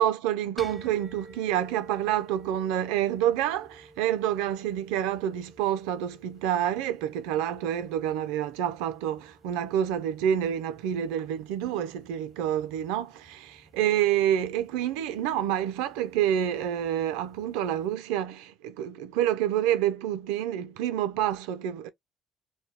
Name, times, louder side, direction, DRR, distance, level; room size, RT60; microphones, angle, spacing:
voice 1, 0.0-21.9, right 10 dB, 85° right, 0.4 m, -28 dB
sound 1, 0.6-17.9, right 1 dB, ahead, 0.8 m, -53 dB
2.2 x 2.1 x 3.3 m
supercardioid pair, 65°, 0 cm